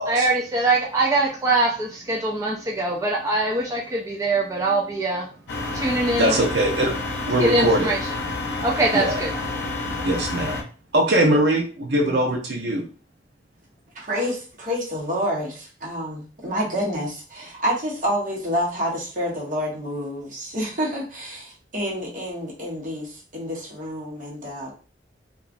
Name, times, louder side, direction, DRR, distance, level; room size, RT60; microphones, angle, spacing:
voice 1, 0.1-5.3 5.8-6.4 7.4-8.0 8.6-9.3, right 2 dB, 20° right, -2 dB, 0.3 m, -22 dB
sound 1, 5.5-10.6, left 2 dB, 70° left, 0.6 m, -29 dB
voice 2, 6.2-6.9 7.2-7.9 8.9-9.2 10.0-10.6 10.9-12.8, right 1 dB, 65° right, 1 dB, 0.6 m, -21 dB
voice 3, 13.9-24.7, equal, 50° right, -3 dB, 1.0 m, -28 dB
2.9 x 2.3 x 2.5 m, 0.37 s
head